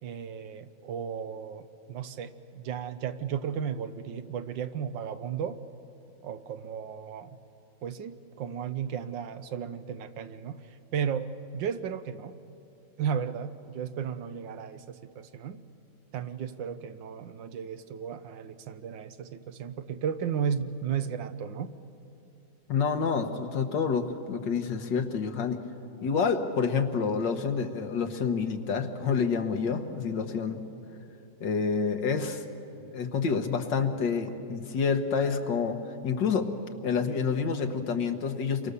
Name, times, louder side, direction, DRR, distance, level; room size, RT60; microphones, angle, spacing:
voice 1, 0.0-5.6 6.2-7.4 7.8-10.6 10.9-12.3 13.0-15.6 16.1-21.7, right 7 dB, 80° right, 11 dB, 1.6 m, -34 dB
voice 2, 22.7-25.6 26.0-30.6 31.4-32.4 32.9-35.8 36.0-36.5 36.8-38.7, left 5 dB, 75° left, 6 dB, 2.0 m, -28 dB
29.5 x 23.0 x 6.9 m, 2.8 s
omnidirectional pair, 2.0 m